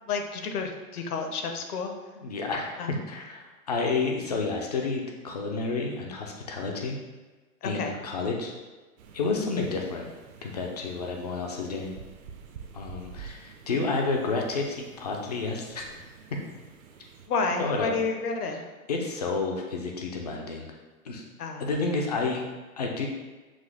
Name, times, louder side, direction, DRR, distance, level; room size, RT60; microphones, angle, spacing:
voice 1, 0.1-1.9 2.8-2.9 7.6-7.9 17.3-18.6 21.4-21.6, left 4 dB, 70° left, 4 dB, 0.9 m, -30 dB
voice 2, 2.2-7.0 7.6-8.5 9.1-10.1 10.4-11.9 12.7-16.0 17.6-17.9 18.5-18.6 18.9-20.7 21.0-21.2 21.6-22.4 22.8-23.1, left 3 dB, 30° left, 1 dB, 0.3 m, -30 dB
sound 1, 9.0-17.3, right 6 dB, 60° right, 0.7 m, -48 dB
6.1 x 2.4 x 3.3 m, 1.3 s
hypercardioid pair, 135°, 46 cm